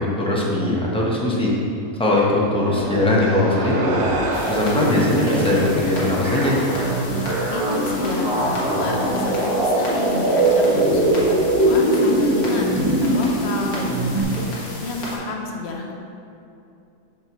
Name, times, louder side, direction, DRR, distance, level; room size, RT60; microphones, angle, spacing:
voice 1, 0.0-1.5 2.0-4.0 4.5-6.6, left 1 dB, 5° left, -5 dB, 0.6 m, -20 dB
sound 1, 2.6-14.2, right 1 dB, 20° right, 1.3 m, -22 dB
sound 2, 2.8-7.5, right 2 dB, 85° right, 1.3 m, -32 dB
sound 3, 4.3-15.2, left 1 dB, 75° left, 1.8 m, -34 dB
voice 2, 7.5-15.9, left 2 dB, 55° left, 0 dB, 0.8 m, -30 dB
7.1 x 6.1 x 3.0 m, 2.7 s
omnidirectional pair, 1.6 m